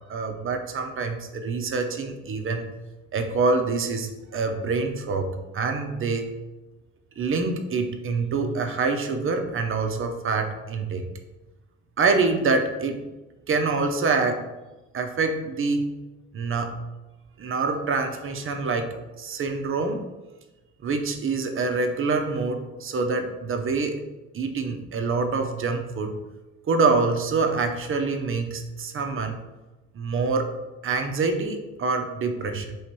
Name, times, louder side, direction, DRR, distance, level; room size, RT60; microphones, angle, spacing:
voice 1, 0.1-2.7 3.1-5.3 5.5-6.3 7.2-11.0 12.0-13.0 13.5-14.4 14.9-15.9 16.3-16.8 17.4-20.0 20.8-24.0 24.3-26.1 26.7-29.4 29.9-30.4 30.8-32.8, right 4 dB, 45° right, 5 dB, 0.6 m, -26 dB
3.1 x 3.0 x 4.5 m, 1.1 s
cardioid pair, 90°, 30 cm